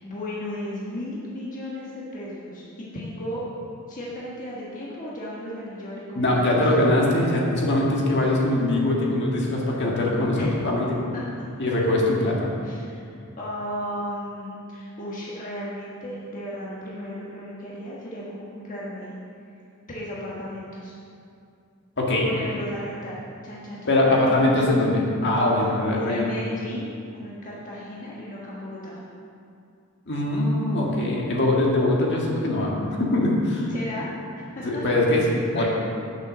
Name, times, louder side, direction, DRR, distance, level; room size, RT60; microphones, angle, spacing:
voice 1, 0.0-3.4 3.9-6.6 10.4-10.6 11.1-11.7 12.6-13.1 13.4-19.1 19.9-20.9 22.2-24.6 25.9-29.0 33.7-34.9 35.5-35.7, left 1 dB, 35° left, -6 dB, 1.5 m, -35 dB
voice 2, 6.1-10.9 11.6-12.5 22.0-22.3 23.9-26.2 30.1-32.7 33.0-33.7 34.6-35.7, left 1 dB, 50° left, -3 dB, 1.8 m, -22 dB
9.2 x 7.1 x 6.2 m, 2.5 s
head